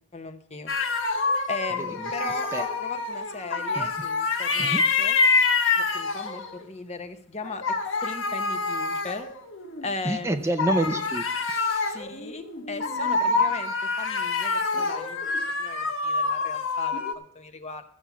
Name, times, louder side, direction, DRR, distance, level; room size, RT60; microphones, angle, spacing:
voice 1, 0.1-0.7 1.5-5.2 5.8-7.7 8.0-9.3 9.8-10.6 11.9-17.8, left 3 dB, 35° left, 8 dB, 1.0 m, -37 dB
sound 1, 0.7-6.6 7.4-9.9 10.6-17.1, left 4 dB, 85° left, 1.3 m, -26 dB
voice 2, 10.1-12.0, right 1 dB, 15° right, 7 dB, 0.5 m, -28 dB
14.0 x 7.0 x 6.0 m, 0.68 s
head